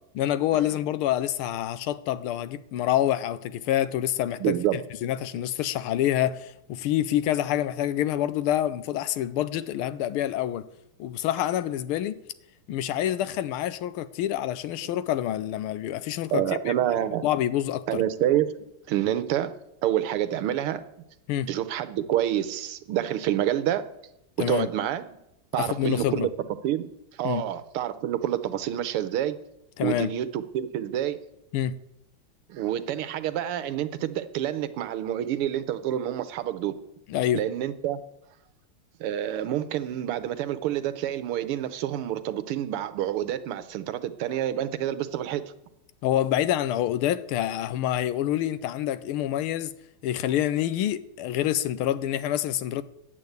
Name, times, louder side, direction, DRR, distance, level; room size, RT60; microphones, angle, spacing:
voice 1, 0.1-10.7 11.0-12.2 12.7-16.7 17.2-18.0 21.3-21.5 24.4-24.7 25.6-26.3 27.2-27.5 29.8-30.1 31.5-31.8 37.1-37.4 46.0-49.7 50.0-52.8, left 12 dB, 85° left, 1.5 m, -27 dB
voice 2, 4.4-4.8 16.3-17.3 17.9-18.5 18.9-19.5 19.8-20.8 21.5-23.9 24.5-25.1 25.5-26.3 26.6-26.8 27.2-29.4 29.8-31.2 32.5-36.7 37.3-38.0 39.0-45.4, right 11 dB, 85° right, 1.7 m, -27 dB
10.5 x 8.7 x 8.0 m
omnidirectional pair, 2.4 m